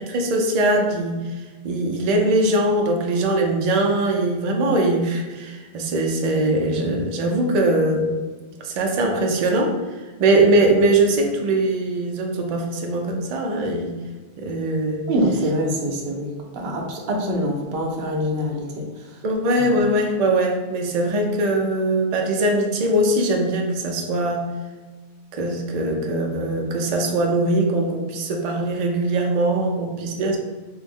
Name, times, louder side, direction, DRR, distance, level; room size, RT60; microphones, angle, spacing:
voice 1, 0.1-1.2 1.6-8.1 8.6-9.8 10.2-13.9 14.4-15.1 19.2-24.4 25.3-30.4, right 1 dB, 55° right, 2 dB, 0.5 m, -21 dB
voice 2, 15.1-19.2 19.7-19.8, equal, 70° right, 1 dB, 0.8 m, -25 dB
3.2 x 2.0 x 3.5 m, 1.3 s
omnidirectional pair, 1.1 m